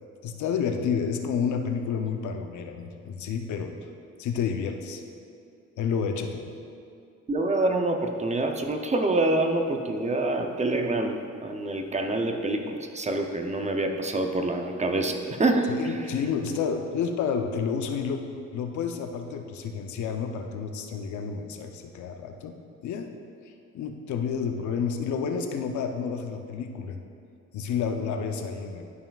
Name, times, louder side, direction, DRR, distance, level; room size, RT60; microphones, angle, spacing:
voice 1, 0.2-3.8 4.2-5.0 5.8-6.5 15.7-18.2 18.5-22.6 22.8-23.1 23.7-27.0 27.5-28.8, left 6 dB, 75° left, 5 dB, 0.7 m, -30 dB
voice 2, 7.3-11.2 11.4-15.7, right 2 dB, 25° right, 4 dB, 0.6 m, -26 dB
11.0 x 5.6 x 2.4 m, 2.4 s
cardioid pair, 90°, 30 cm